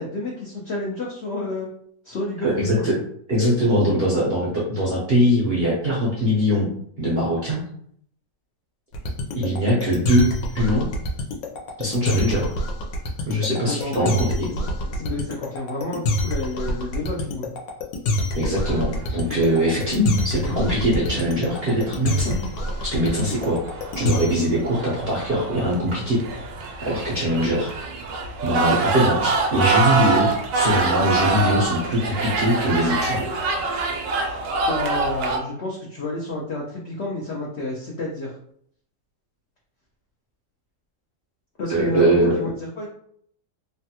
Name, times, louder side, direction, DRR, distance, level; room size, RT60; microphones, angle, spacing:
voice 1, 0.0-1.7 2.0-2.9 13.6-14.2 14.9-17.5 34.7-38.3 41.6-42.9, left 2 dB, 70° left, -4 dB, 0.6 m, -30 dB
voice 2, 2.4-2.9 3.3-6.7 7.0-7.6 9.4-10.9 11.8-12.5 13.3-14.5 18.3-22.4 22.9-23.6 24.0-26.2 26.8-27.7 28.4-33.3 41.7-42.3, equal, 60° right, -5 dB, 0.6 m, -22 dB
sound 1, 8.9-24.6, left 1 dB, 90° left, 1.3 m, -26 dB
sound 2, 18.6-35.4, right 3 dB, 85° right, 1.3 m, -26 dB
3.2 x 2.2 x 2.8 m, 0.65 s
omnidirectional pair, 1.9 m